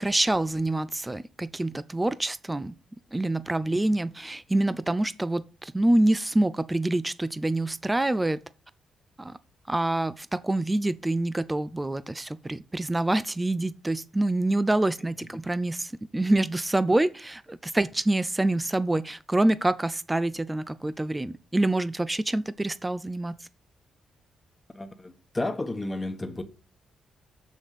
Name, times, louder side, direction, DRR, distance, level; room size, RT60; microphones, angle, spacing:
voice 1, 0.0-2.8 3.1-8.4 9.2-9.4 9.7-23.4, right 1 dB, 15° right, 0.5 m, -26 dB
voice 2, 24.7-26.4, left 2 dB, 20° left, 1.3 m, -32 dB
7.2 x 6.3 x 6.7 m
cardioid pair, 90°, 0 cm